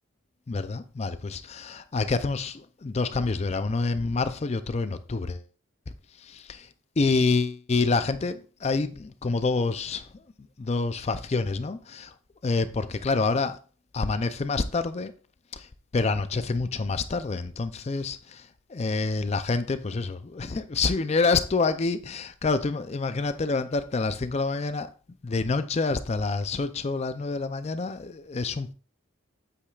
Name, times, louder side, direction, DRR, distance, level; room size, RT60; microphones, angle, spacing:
voice 1, 0.5-5.4 6.2-6.7 7.0-10.1 10.6-12.1 12.4-13.6 13.9-15.1 15.5-24.9 25.2-28.7, left 3 dB, 30° left, 0.4 m, -27 dB
8.5 x 8.3 x 2.4 m
head